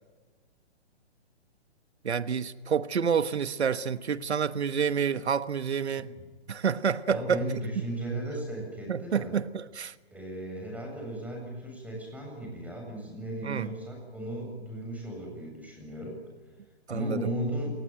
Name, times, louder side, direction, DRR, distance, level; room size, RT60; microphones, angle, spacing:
voice 1, 2.0-6.1 6.5-7.4 8.9-9.9 13.4-13.7 16.9-17.3, right 7 dB, 85° right, 1.2 m, -28 dB
voice 2, 7.1-9.3 10.1-16.1 16.9-17.7, right 1 dB, 5° right, 7.5 m, -36 dB
27.5 x 19.5 x 9.3 m
hypercardioid pair, 140°, 32 cm